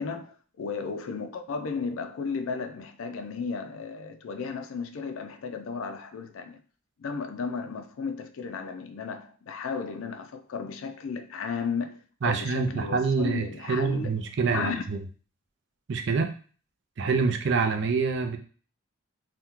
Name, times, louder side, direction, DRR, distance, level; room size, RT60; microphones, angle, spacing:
voice 1, 0.0-6.6 7.0-14.8, left 5 dB, 75° left, 0.4 m, -34 dB
voice 2, 12.2-15.0 15.9-16.3 17.0-18.4, right 4 dB, 55° right, 0.4 m, -26 dB
2.8 x 2.2 x 3.5 m
head